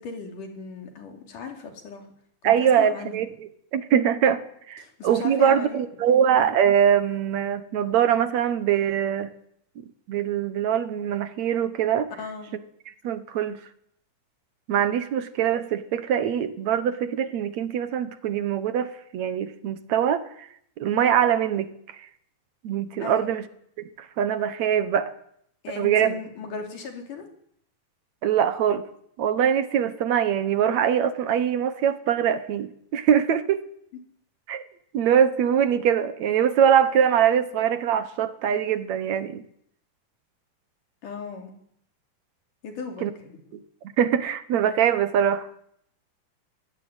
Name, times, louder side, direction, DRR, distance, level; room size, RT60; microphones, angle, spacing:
voice 1, 0.0-2.1 2.4-3.2 4.8-6.1 12.2-12.5 23.0-23.3 25.6-27.3 41.0-41.5 42.6-43.4, left 5 dB, 80° left, 3 dB, 5.0 m, -37 dB
voice 2, 2.4-9.3 10.1-12.1 13.0-13.6 14.7-20.5 20.8-22.1 22.6-23.4 24.0-25.1 25.8-26.2 28.2-28.8 29.2-33.6 34.5-34.6 34.9-39.5 43.0-43.1 43.5-43.6 44.0-45.5, right 9 dB, 65° right, 12 dB, 2.3 m, -23 dB
22.0 x 17.5 x 9.0 m, 0.71 s
omnidirectional pair, 3.6 m